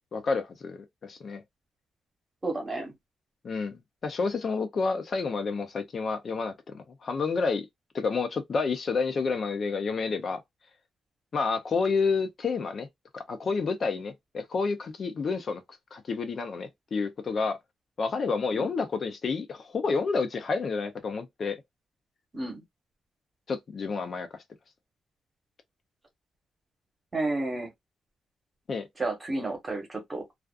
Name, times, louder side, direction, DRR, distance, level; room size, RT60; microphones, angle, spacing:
voice 1, 0.1-1.4 3.4-7.7 7.9-10.4 11.3-12.9 13.1-15.6 15.9-17.6 18.0-21.6 23.5-24.4 28.7-28.9, left 4 dB, 40° left, 0.5 m, -29 dB
voice 2, 2.4-2.9 18.5-18.7 22.3-22.6 27.1-27.7 29.0-30.2, right 2 dB, 20° right, 1.0 m, -31 dB
2.4 x 2.4 x 2.3 m
wide cardioid pair, 150°, 0 cm